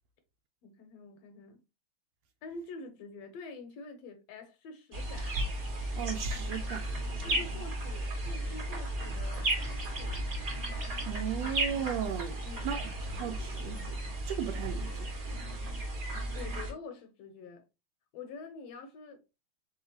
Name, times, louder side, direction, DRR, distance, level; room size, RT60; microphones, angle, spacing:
voice 1, 0.6-1.6 2.4-5.4 7.2-10.2 12.4-12.8 16.3-17.6 18.1-19.2, left 3 dB, 75° left, 1.7 m, -46 dB
sound 1, 4.9-16.7, right 1 dB, 40° right, 1.3 m, -34 dB
voice 2, 6.0-6.9 11.0-14.0 14.2-15.1, right 9 dB, 80° right, 1.6 m, -36 dB
4.3 x 4.0 x 2.8 m
omnidirectional pair, 3.3 m